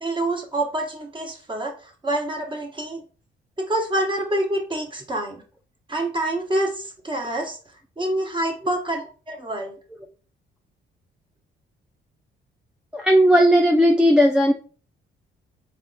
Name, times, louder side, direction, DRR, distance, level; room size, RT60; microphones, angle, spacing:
voice 1, 0.0-3.0 3.6-5.4 5.9-7.6 8.0-9.7, right 1 dB, 25° right, 1 dB, 1.1 m, -26 dB
voice 2, 12.9-14.5, equal, 5° right, 0 dB, 0.4 m, -16 dB
3.3 x 2.5 x 3.8 m, 0.38 s
cardioid pair, 90°, 20 cm